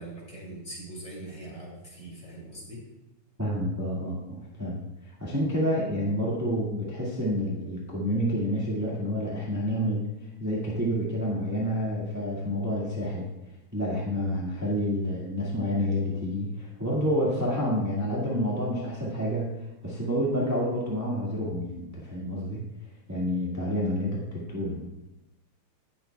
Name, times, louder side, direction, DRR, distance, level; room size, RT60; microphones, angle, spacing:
voice 1, 0.0-2.8, right 1 dB, 20° left, -4 dB, 2.9 m, -41 dB
voice 2, 3.4-4.8 5.1-10.1 10.4-13.3 13.7-22.7 23.1-24.9, equal, 10° right, -6 dB, 0.8 m, -29 dB
18.0 x 7.1 x 2.3 m, 0.96 s
omnidirectional pair, 3.4 m